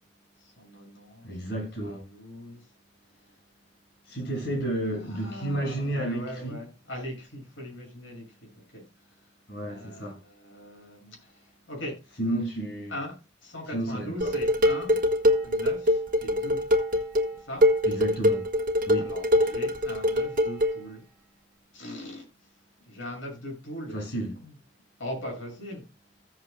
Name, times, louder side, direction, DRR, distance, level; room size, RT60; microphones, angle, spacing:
voice 1, 0.4-1.4 1.8-2.7 3.1-3.4 4.2-4.6 4.9-9.3 9.6-12.1 12.9-15.0 15.3-16.6 17.4-17.7 19.0-21.0 21.7-22.5 22.8-24.0 24.4-24.5 25.0-25.8, left 1 dB, 85° left, 6.5 m, -40 dB
voice 2, 1.2-2.0 4.1-6.6 9.5-10.2 12.2-12.9 13.7-14.3 17.8-18.5 18.9-19.1 23.9-24.4, right 1 dB, 60° left, 6.5 m, -31 dB
Dishes pots and pans, 14.2-20.8, left 1 dB, 45° right, 1.5 m, -24 dB
16.0 x 8.3 x 2.2 m
head